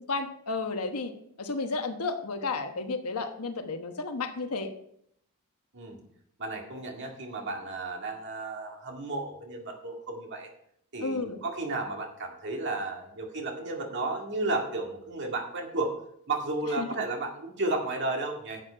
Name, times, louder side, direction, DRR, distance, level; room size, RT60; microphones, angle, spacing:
voice 1, 0.1-1.1 1.4-4.7 11.0-11.4 16.8-16.9, left 3 dB, 80° left, 7 dB, 1.1 m, -32 dB
voice 2, 6.4-10.5 10.9-15.9 16.3-18.6, right 2 dB, 55° right, 2 dB, 2.1 m, -33 dB
10.5 x 7.8 x 4.6 m, 0.71 s
head